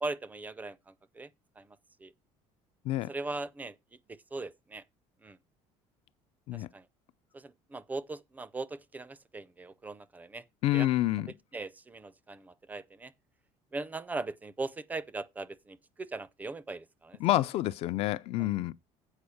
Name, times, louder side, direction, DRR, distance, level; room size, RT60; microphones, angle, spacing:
voice 1, 0.0-1.3 1.6-2.1 3.1-3.8 4.1-4.8 5.2-5.4 6.5-6.9 7.3-10.4 10.7-10.9 11.5-13.1 13.7-17.2 18.4-18.5, right 3 dB, 15° right, 0.4 m, -39 dB
voice 2, 10.6-11.3 17.2-18.7, left 15 dB, 50° left, 0.5 m, -28 dB
8.3 x 5.2 x 6.4 m
cardioid pair, 175°, 13 cm